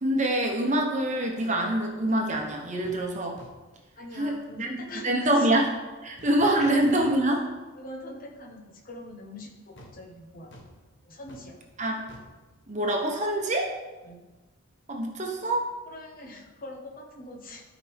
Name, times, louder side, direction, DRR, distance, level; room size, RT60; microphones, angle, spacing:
voice 1, 0.0-3.4 4.1-4.7 5.0-7.4 11.8-12.0 12.7-13.7 14.9-15.7, right 1 dB, 35° right, 1 dB, 1.0 m, -25 dB
sound 1, 2.3-2.5 2.8-3.1 3.4-3.8 6.2-7.6 8.0-8.1 9.8-13.4 13.7-13.8, equal, 55° left, 1.3 m, -51 dB
voice 2, 4.0-5.5 6.6-6.7 7.8-10.5 11.0-11.6 14.0-14.3 15.9-17.6, left 1 dB, 40° left, 2 dB, 1.1 m, -43 dB
12.5 x 5.1 x 3.5 m, 1.2 s
head